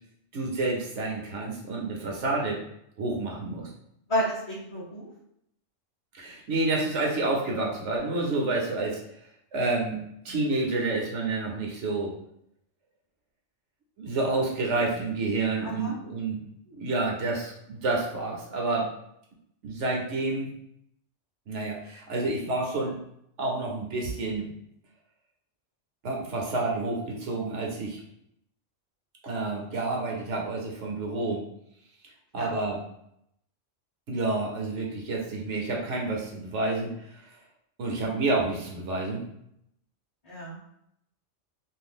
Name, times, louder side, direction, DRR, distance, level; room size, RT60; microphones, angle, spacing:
voice 1, 0.3-2.6 3.0-3.7 6.1-9.0 9.5-10.0 10.2-12.1 14.0-16.4 16.8-18.9 19.6-20.5 21.5-23.0 23.4-24.5 26.0-28.0 29.2-31.4 32.3-32.8 34.1-36.9 37.8-39.2, right 2 dB, 75° right, -1 dB, 1.1 m, -29 dB
voice 2, 4.1-5.1 15.6-16.0 32.3-32.5 40.2-40.6, equal, 30° left, -8 dB, 0.6 m, -31 dB
2.6 x 2.5 x 3.5 m, 0.75 s
omnidirectional pair, 1.3 m